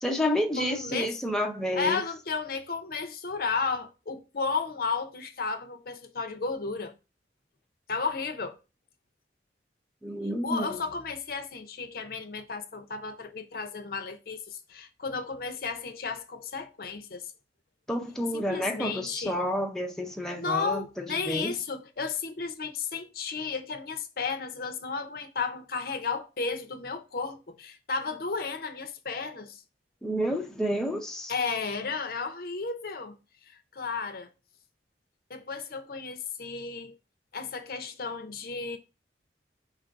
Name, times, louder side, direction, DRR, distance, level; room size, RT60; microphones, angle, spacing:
voice 1, 0.0-2.0 10.0-10.8 17.9-21.5 30.0-31.3, equal, 5° left, 0.5 m, -30 dB
voice 2, 0.6-1.1 1.7-6.9 7.9-8.6 10.4-17.3 18.3-19.4 20.4-29.6 31.3-33.2 33.5-34.3 35.3-37.0 37.3-38.8, left 4 dB, 55° left, 0.6 m, -33 dB
4.5 x 2.5 x 4.4 m
head